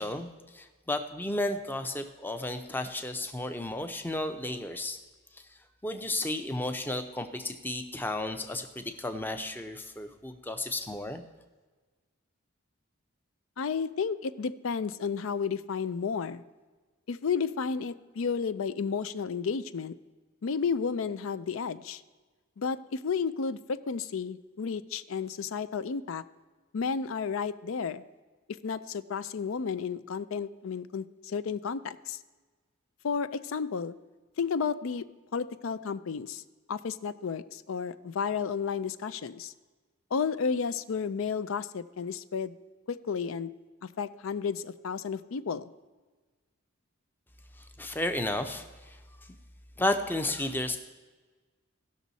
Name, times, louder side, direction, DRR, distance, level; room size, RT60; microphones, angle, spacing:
voice 1, 0.0-5.0 5.3-5.5 5.8-11.2 47.6-49.4 49.8-50.8, left 1 dB, 10° left, 7 dB, 0.6 m, -33 dB
voice 2, 13.6-16.4 17.1-20.0 20.4-22.0 22.6-26.2 26.7-28.0 28.5-32.2 33.0-33.9 34.4-35.0 35.3-36.4 36.7-39.5 40.1-42.6 42.9-43.5 43.8-45.7, left 6 dB, 70° left, 14 dB, 0.4 m, -32 dB
17.0 x 6.3 x 4.1 m, 1.3 s
head